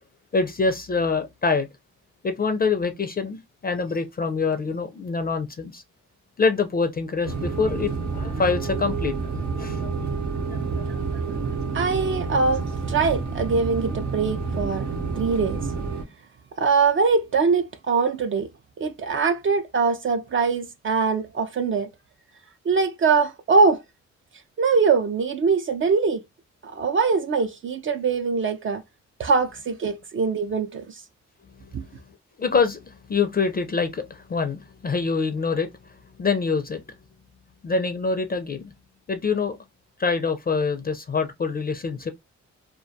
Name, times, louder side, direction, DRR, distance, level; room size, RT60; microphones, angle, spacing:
voice 1, 0.3-1.7 2.2-5.8 6.4-9.2 9.5-9.9 10.5-11.2 31.6-31.8 32.4-35.7 36.2-36.8 37.6-38.7 39.1-39.6 40.0-42.1, left 4 dB, 30° left, 0.4 m, -25 dB
sound 1, 7.2-16.0, right 4 dB, 70° right, 0.7 m, -29 dB
voice 2, 11.7-14.9 15.2-15.6 16.6-18.5 18.8-21.9 22.7-23.8 24.6-26.2 26.6-28.8 29.2-31.0 31.7-31.8, right 4 dB, 45° right, 0.4 m, -22 dB
2.2 x 2.2 x 2.6 m
cardioid pair, 65°, 29 cm